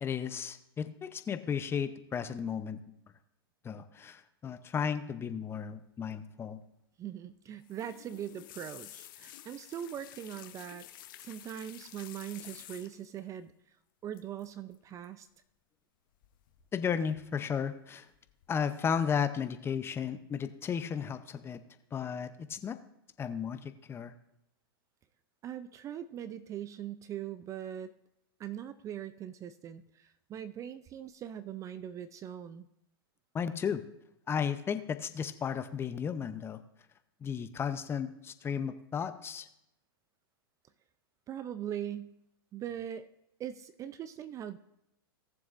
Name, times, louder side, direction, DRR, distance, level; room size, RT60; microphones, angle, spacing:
voice 1, 0.0-2.8 3.6-6.6 16.7-18.1 18.5-21.6 21.9-22.8 23.2-24.1 33.3-33.8 34.3-36.6 37.2-39.5, left 7 dB, 20° left, 11 dB, 0.6 m, -34 dB
voice 2, 7.0-10.9 11.2-13.8 14.0-15.3 25.4-27.9 28.4-32.7 41.3-42.2 42.5-43.1 43.4-44.6, right 10 dB, 25° right, 14 dB, 0.4 m, -41 dB
sound 1, 7.6-13.2 14.1-14.5 14.7-15.0 16.2-16.8 17.1-17.7 18.1-18.5 18.9-19.0, left 13 dB, 55° left, 0.9 m, -51 dB
18.0 x 7.1 x 2.5 m, 0.81 s
hypercardioid pair, 110°, 13 cm